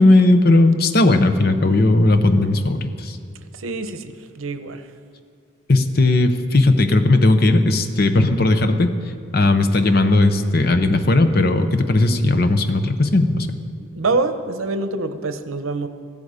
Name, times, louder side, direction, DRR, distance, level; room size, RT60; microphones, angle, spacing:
voice 1, 0.0-3.2 5.7-8.9 9.3-13.5, left 2 dB, 50° left, 8 dB, 0.8 m, -16 dB
voice 2, 3.5-4.8 13.9-15.9, right 3 dB, 90° right, 10 dB, 0.9 m, -25 dB
15.5 x 12.0 x 5.0 m, 2.2 s
head